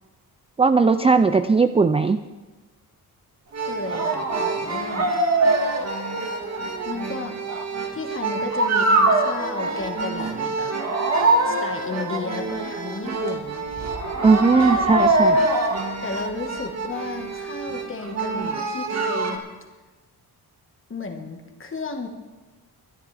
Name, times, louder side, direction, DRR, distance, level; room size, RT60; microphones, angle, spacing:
voice 1, 0.6-2.2 14.2-15.4, right 4 dB, 15° right, 10 dB, 0.3 m, -18 dB
sound 1, 3.5-19.4, right 2 dB, 40° right, 1.8 m, -24 dB
voice 2, 3.7-4.3 4.6-5.1 6.8-7.4 7.9-10.7 11.4-13.7 14.6-14.9 16.0-19.4 20.9-22.1, left 3 dB, 30° left, 4 dB, 1.6 m, -33 dB
23.0 x 11.0 x 3.4 m, 1.2 s
wide cardioid pair, 130°, 39 cm